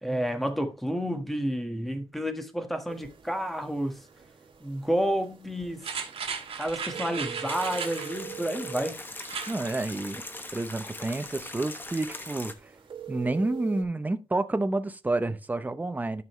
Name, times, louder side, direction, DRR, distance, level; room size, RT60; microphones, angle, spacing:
voice 1, 0.0-4.0 4.6-5.9 6.6-9.0, equal, ahead, 1.4 m, -30 dB
sound 1, 2.9-13.8, right 10 dB, 60° right, 2.8 m, -45 dB
sound 2, 5.8-8.2 9.2-9.6 10.0-10.1, right 6 dB, 80° right, 2.0 m, -35 dB
sound 3, 7.5-12.5, left 2 dB, 20° left, 1.1 m, -40 dB
voice 2, 9.5-10.2 10.5-12.5 13.1-16.2, right 2 dB, 15° right, 0.7 m, -29 dB
12.5 x 5.5 x 3.1 m
wide cardioid pair, 130°, 10 cm